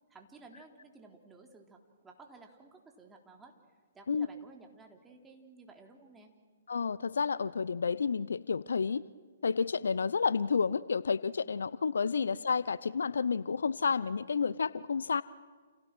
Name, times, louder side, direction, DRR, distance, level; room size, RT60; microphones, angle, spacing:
voice 1, 0.1-3.5 3.9-6.3, right 3 dB, 10° right, 2 dB, 3.7 m, -55 dB
voice 2, 6.7-9.0 9.4-15.2, left 5 dB, 70° left, 19 dB, 0.7 m, -30 dB
30.0 x 29.5 x 6.2 m, 1.5 s
figure-of-eight pair, 125°, 0 cm